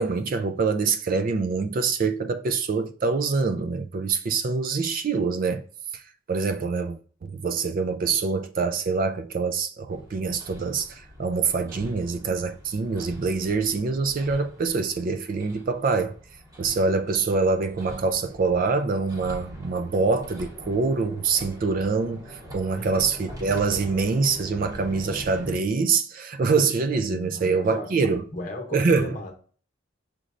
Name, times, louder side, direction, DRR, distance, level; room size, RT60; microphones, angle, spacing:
voice 1, 0.0-5.6 6.3-16.1 16.6-28.2 28.7-29.2, right 4 dB, 40° right, 0.3 m, -25 dB
Hammer, 9.9-25.6, equal, 15° right, 0.8 m, -43 dB
voice 2, 27.1-29.3, left 1 dB, 40° left, 0.9 m, -36 dB
6.3 x 3.1 x 2.5 m
head